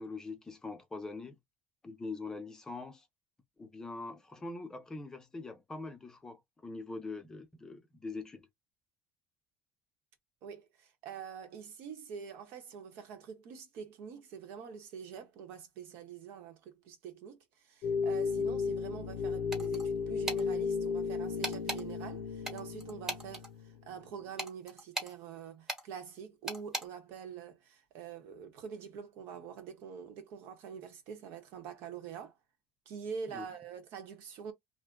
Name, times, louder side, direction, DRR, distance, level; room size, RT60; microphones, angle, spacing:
voice 1, 0.0-1.4 1.8-3.1 3.6-8.5 33.3-33.5, left 3 dB, 15° left, 0.6 m, -43 dB
voice 2, 10.4-32.4 32.9-34.5, right 7 dB, 70° right, 1.0 m, -45 dB
sound 1, 17.8-23.9, left 5 dB, 55° left, 0.6 m, -34 dB
sound 2, 19.5-19.9 20.3-20.4 21.4-21.8 22.4-23.5 24.4-25.1 25.7-25.8 26.5-26.9, right 1 dB, 10° right, 1.0 m, -37 dB
2.7 x 2.1 x 3.6 m
cardioid pair, 140°, 4 cm